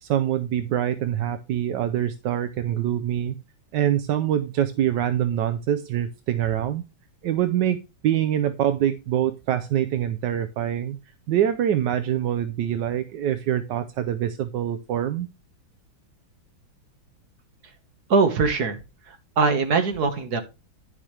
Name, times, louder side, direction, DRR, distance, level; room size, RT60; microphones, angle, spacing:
voice 1, 0.0-3.3 3.7-6.8 7.2-7.8 8.0-11.0 11.3-15.3, right 11 dB, 70° right, 9 dB, 1.1 m, -24 dB
voice 2, 18.1-18.8 19.4-20.4, right 4 dB, 50° right, 6 dB, 1.8 m, -21 dB
10.0 x 7.3 x 3.3 m, 0.27 s
omnidirectional pair, 2.3 m